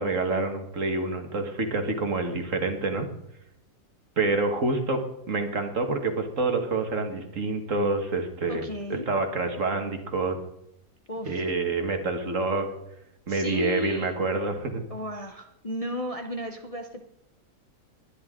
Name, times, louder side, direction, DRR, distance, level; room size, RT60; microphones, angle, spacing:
voice 1, 0.0-3.1 4.2-5.0 5.3-8.6 9.1-10.4 11.3-12.7 13.3-14.8, right 3 dB, 55° right, 5 dB, 1.9 m, -27 dB
voice 2, 8.5-9.1 11.1-11.5 13.3-14.2 14.9-17.0, left 1 dB, 25° left, 4 dB, 0.9 m, -34 dB
21.5 x 10.5 x 3.8 m, 0.81 s
omnidirectional pair, 1.7 m